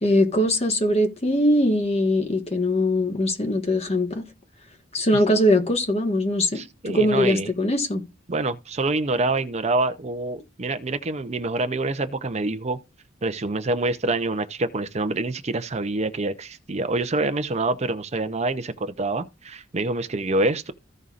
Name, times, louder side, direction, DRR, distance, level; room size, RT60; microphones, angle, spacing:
voice 1, 0.0-4.2 4.9-8.0, left 1 dB, 35° left, 1.4 m, -21 dB
voice 2, 6.5-7.5 8.3-12.8 13.2-20.7, right 2 dB, 35° right, 0.6 m, -26 dB
15.5 x 5.4 x 2.5 m
head